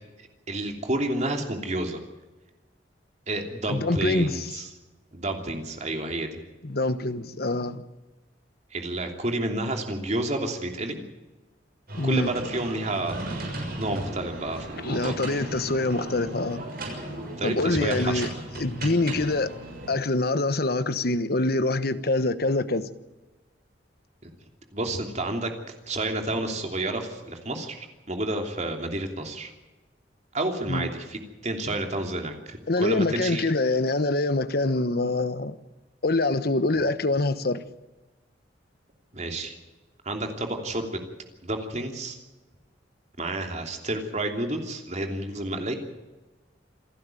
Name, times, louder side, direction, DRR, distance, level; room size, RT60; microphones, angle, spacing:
voice 1, 0.5-2.0 3.3-4.7 5.1-6.4 8.7-11.0 12.0-13.2 13.8-15.2 17.4-18.2 24.2-24.3 24.7-25.5 25.9-29.5 30.3-33.5 39.1-39.5 40.0-41.0 41.4-42.2 43.2-45.8, right 1 dB, 40° right, 3.1 m, -30 dB
voice 2, 3.7-4.5 6.6-7.8 12.0-12.3 14.8-16.6 17.4-19.5 19.9-22.9 30.7-30.9 32.7-35.6 36.0-37.6, left 2 dB, 55° left, 1.2 m, -25 dB
sound 1, 11.9-20.0, right 1 dB, 55° right, 6.8 m, -36 dB
27.5 x 12.5 x 9.1 m
head